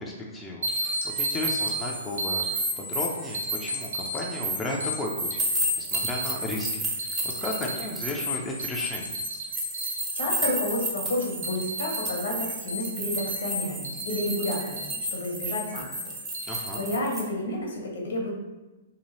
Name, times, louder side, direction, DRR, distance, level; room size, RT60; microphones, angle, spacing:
voice 1, 0.0-9.2 16.4-16.8, left 2 dB, 15° left, -2 dB, 0.4 m, -34 dB
sound 1, 0.6-16.6, equal, 75° right, 0.6 m, -33 dB
sound 2, 5.4-8.1 9.5-17.2, right 2 dB, 20° right, 0.8 m, -33 dB
voice 2, 10.1-15.9 16.4-18.3, left 1 dB, 70° left, -1 dB, 0.8 m, -31 dB
2.9 x 2.2 x 3.0 m, 1.1 s
hypercardioid pair, 120°, 0 cm